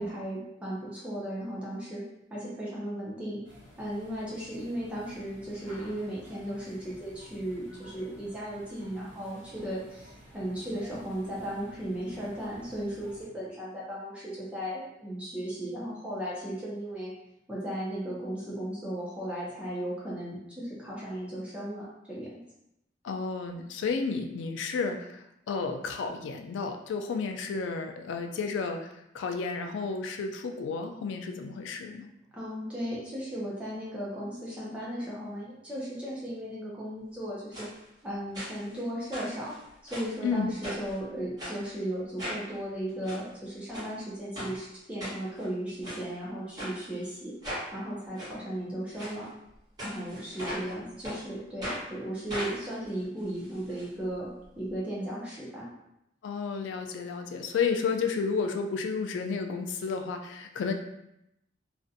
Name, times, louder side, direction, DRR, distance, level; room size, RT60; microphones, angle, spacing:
voice 1, 0.0-2.0 2.3-3.4 3.8-17.1 17.5-22.3 32.3-37.7 38.0-39.5 39.8-47.3 47.7-49.3 49.8-54.3 54.6-55.7, right 1 dB, 5° right, -8 dB, 0.5 m, -36 dB
sound 1, 3.4-13.3, equal, 80° right, 1.1 m, -53 dB
voice 2, 23.0-28.9 29.1-32.1 40.2-40.5 50.7-50.9 56.2-60.7, left 5 dB, 85° left, 4 dB, 0.3 m, -32 dB
sound 2, 37.5-37.7 38.3-38.8 39.1-40.2 40.6-40.9 41.4-41.6 42.2-42.4 42.9-43.2 43.7-43.9 44.3-44.5 45.0-45.5 45.8-46.0 46.6-46.7 47.4-47.7 48.2-48.3 48.9-49.1 49.8-50.7 51.0-51.2 51.6-51.8 52.3-53.8 54.1-54.2 54.4-54.5, equal, 20° right, 1.2 m, -38 dB
2.4 x 2.1 x 2.6 m, 0.84 s
head